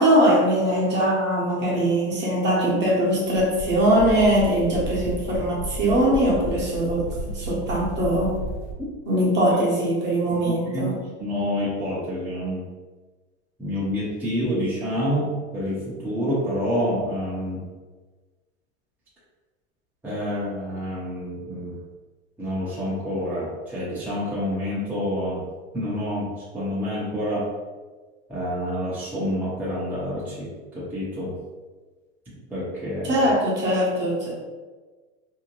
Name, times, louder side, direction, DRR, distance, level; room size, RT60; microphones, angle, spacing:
voice 1, 0.0-7.1 7.3-8.4 9.0-11.0 33.0-34.3, right 1 dB, 30° right, -4 dB, 0.9 m, -21 dB
sound 1, 2.5-8.7, equal, 65° left, 0.6 m, -33 dB
voice 2, 10.7-12.7 13.6-17.6 20.0-21.8 22.4-25.4 25.7-27.5 28.3-31.4 32.5-33.3, equal, 5° right, -9 dB, 0.7 m, -28 dB
2.6 x 2.1 x 3.0 m, 1.3 s
hypercardioid pair, 100°, 35 cm